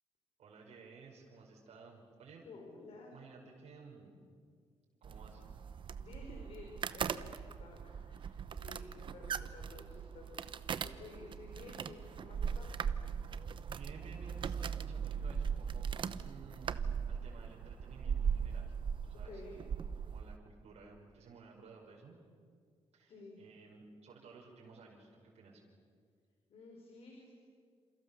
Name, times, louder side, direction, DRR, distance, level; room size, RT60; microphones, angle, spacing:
voice 1, 0.4-2.4 3.1-4.2 5.0-5.6 13.7-18.7 19.0-22.2 22.9-25.6, right 4 dB, 80° right, -2 dB, 5.4 m, -56 dB
voice 2, 2.4-3.1 5.1-5.2 6.0-12.8 19.1-19.6 23.1-23.4 26.5-27.3, left 3 dB, 65° left, 1 dB, 4.7 m, -53 dB
sound 1, 5.0-20.4, right 7 dB, 50° right, 0.9 m, -39 dB
28.5 x 28.0 x 7.1 m, 2.1 s
wide cardioid pair, 165°, 11 cm